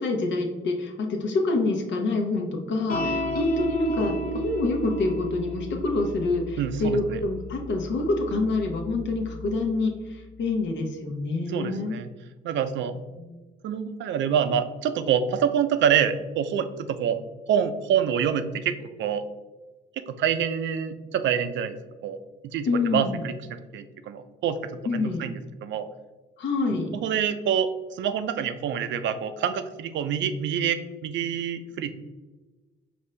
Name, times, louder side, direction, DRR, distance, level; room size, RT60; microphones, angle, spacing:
voice 1, 0.0-4.1 4.4-9.9 10.4-12.0 22.7-23.1 24.8-25.2 26.4-26.9, left 2 dB, 65° left, 3 dB, 0.8 m, -26 dB
sound 1, 2.9-9.6, left 1 dB, 45° left, 1.1 m, -33 dB
voice 2, 6.6-7.2 11.5-12.1 12.4-13.0 13.6-17.2 17.5-19.2 20.1-21.8 22.0-22.2 22.4-23.3 23.7-25.9 26.9-31.9, right 8 dB, 70° right, 10 dB, 0.4 m, -26 dB
5.1 x 2.6 x 3.2 m, 1.2 s
cardioid pair, 90°, 20 cm